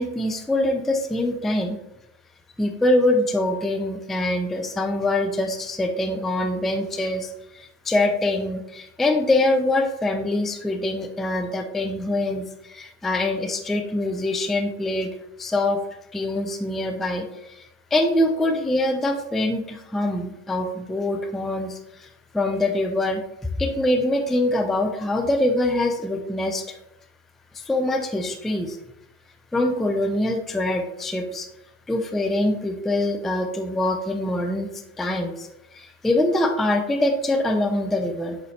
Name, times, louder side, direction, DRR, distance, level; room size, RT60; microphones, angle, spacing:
voice 1, 0.0-1.8 2.6-15.1 15.4-15.8 16.1-22.1 22.3-23.2 23.6-26.6 27.5-28.8 29.5-31.5 31.9-34.7 35.0-38.4, left 1 dB, ahead, 5 dB, 0.4 m, -24 dB
7.9 x 4.0 x 3.2 m, 0.84 s
hypercardioid pair, 95°, 45 cm